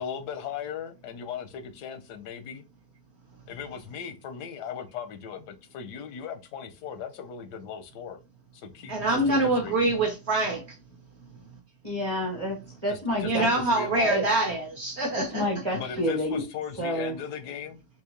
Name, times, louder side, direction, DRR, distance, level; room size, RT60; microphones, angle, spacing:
voice 1, 0.0-2.6 3.5-8.2 8.5-9.8 12.9-14.2 15.7-17.8, left 7 dB, 90° left, 1.3 m, -38 dB
voice 2, 8.9-10.6 13.1-15.5, right 2 dB, 55° right, 0.8 m, -25 dB
voice 3, 11.8-13.5 14.0-14.2 15.2-16.4 16.8-17.2, equal, 25° right, 0.8 m, -29 dB
3.6 x 2.8 x 2.8 m
omnidirectional pair, 1.7 m